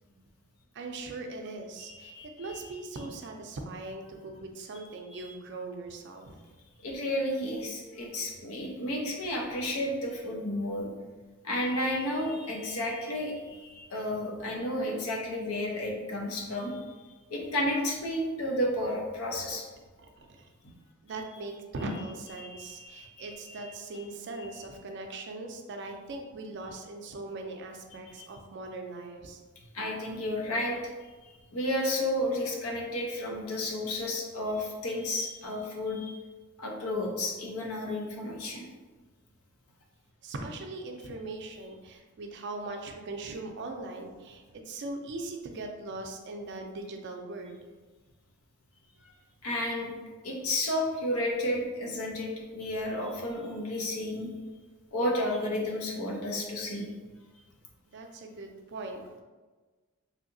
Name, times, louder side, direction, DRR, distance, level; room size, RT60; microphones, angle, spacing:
voice 1, 0.7-6.4 20.0-20.5 21.0-29.4 40.2-47.6 57.9-59.2, right 2 dB, 55° right, 3 dB, 0.4 m, -40 dB
voice 2, 1.9-2.6 5.1-5.3 6.8-10.9 11.4-16.9 17.3-19.6 20.6-20.7 22.4-23.7 27.9-28.3 29.7-30.8 31.2-36.2 36.6-38.6 49.0-49.1 49.4-49.9 50.2-54.3 54.9-56.9, left 1 dB, 85° left, 0 dB, 0.7 m, -32 dB
3.2 x 2.8 x 2.6 m, 1.3 s
head